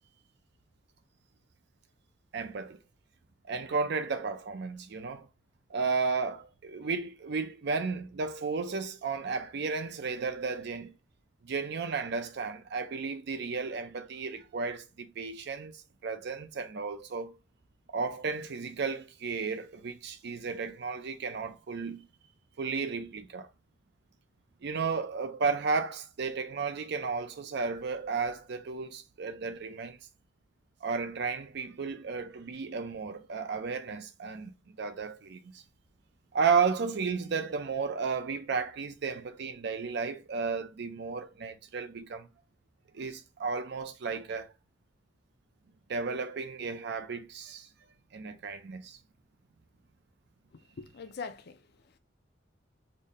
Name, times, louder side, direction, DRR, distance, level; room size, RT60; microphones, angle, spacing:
voice 1, 2.3-2.8 3.5-5.3 5.7-10.9 11.4-17.4 17.9-22.1 22.6-23.5 24.6-30.0 30.8-35.6 36.3-42.3 42.9-44.5 45.9-47.7 48.1-49.0, right 5 dB, 60° right, 0.5 m, -33 dB
voice 2, 50.5-52.0, left 5 dB, 55° left, 0.5 m, -43 dB
4.0 x 2.1 x 3.4 m
head